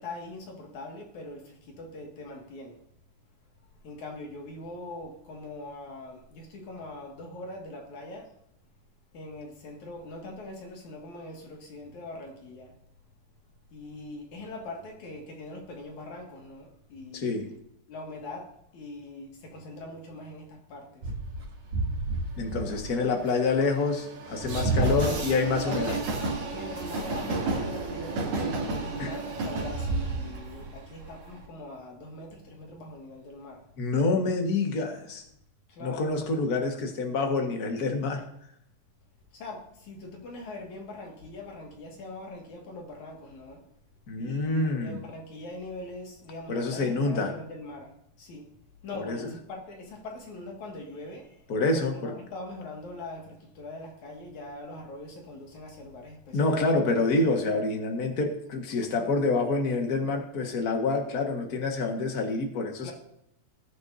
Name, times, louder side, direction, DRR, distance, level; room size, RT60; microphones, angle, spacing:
voice 1, 0.0-2.8 3.8-8.3 9.1-12.7 13.7-17.6 17.9-21.1 21.6-21.8 24.7-25.2 25.6-26.0 26.5-33.7 35.7-36.2 39.3-43.6 44.2-48.5 48.8-51.5 51.7-56.5 62.8-62.9, left 2 dB, 60° left, 3.4 m, -42 dB
voice 2, 17.1-17.5 22.4-26.0 29.0-29.1 33.8-35.2 35.8-38.2 44.1-45.0 46.5-47.3 48.9-49.3 51.5-52.1 56.3-62.9, left 3 dB, 40° left, 1.4 m, -27 dB
Train, 21.0-31.4, right 3 dB, 70° right, 4.4 m, -31 dB
20.5 x 9.3 x 2.8 m
omnidirectional pair, 4.1 m